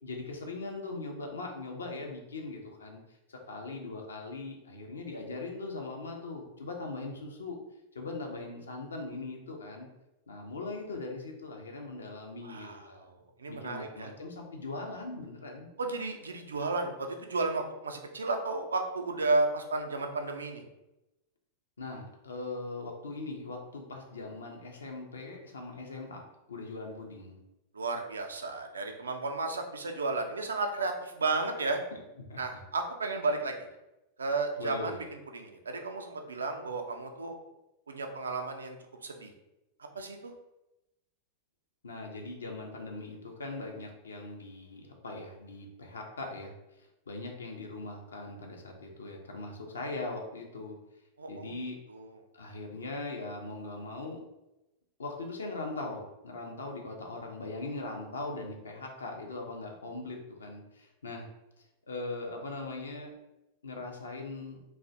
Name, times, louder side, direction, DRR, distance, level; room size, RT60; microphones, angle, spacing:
voice 1, 0.0-3.0 3.3-7.6 7.9-9.9 10.3-13.1 13.5-15.7 21.8-26.2 26.5-27.4 32.3-32.6 34.6-35.0 41.8-46.5 47.1-50.8 51.3-51.8 52.3-54.2 55.0-61.3 61.9-63.1 63.6-64.6, left 3 dB, 70° left, 1 dB, 0.4 m, -40 dB
voice 2, 12.4-14.1 15.8-20.6 27.7-31.8 32.4-33.7 34.2-35.0 35.3-37.4 37.9-38.8 39.0-39.3 39.9-40.3 51.2-51.5 51.9-52.1, right 3 dB, 75° right, 4 dB, 0.3 m, -33 dB
2.4 x 2.0 x 2.7 m, 0.96 s
figure-of-eight pair, 90°, 0 cm